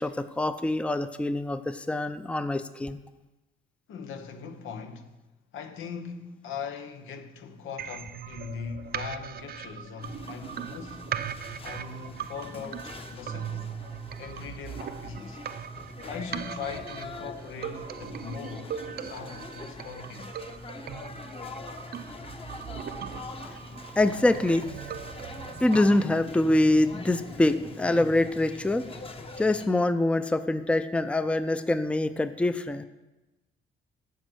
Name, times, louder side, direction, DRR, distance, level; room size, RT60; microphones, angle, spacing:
voice 1, 0.0-3.0 23.4-24.8 25.5-28.9 29.4-32.8, left 1 dB, 5° left, 0.5 m, -25 dB
voice 2, 3.9-5.2 5.5-11.1 11.6-13.7 14.2-15.4 16.1-20.3, left 6 dB, 85° left, 1.0 m, -40 dB
sound 1, 7.8-25.8, right 9 dB, 50° right, 0.6 m, -39 dB
sound 2, 10.0-29.7, left 2 dB, 30° left, 1.1 m, -43 dB
9.5 x 7.7 x 6.3 m
cardioid pair, 90°, 20 cm